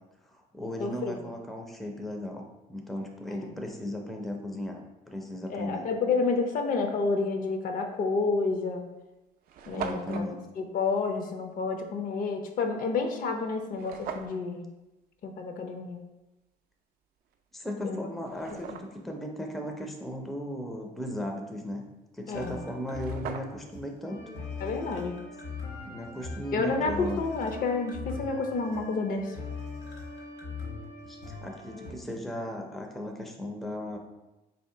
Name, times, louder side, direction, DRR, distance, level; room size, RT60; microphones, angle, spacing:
voice 1, 0.2-5.9 9.7-10.4 17.5-21.9 22.1-24.2 25.8-27.2 31.0-34.0, equal, ahead, 2 dB, 0.4 m, -36 dB
voice 2, 0.8-1.2 5.5-8.8 9.7-10.2 10.6-14.6 15.2-16.0 17.8-18.1 18.7-18.8 22.3-22.6 24.6-25.1 26.5-29.4, left 4 dB, 55° left, 5 dB, 0.5 m, -29 dB
sound 1, 7.9-8.1 8.8-8.9 9.1-9.2 9.4-10.3 13.7-14.4 17.3-17.4 18.0-19.1 22.5-22.6 22.8-23.8, right 7 dB, 60° right, 0.4 m, -40 dB
sound 2, 22.3-31.9, left 4 dB, 70° left, 1.1 m, -40 dB
3.1 x 2.8 x 4.3 m, 1.0 s
cardioid pair, 110°, 17 cm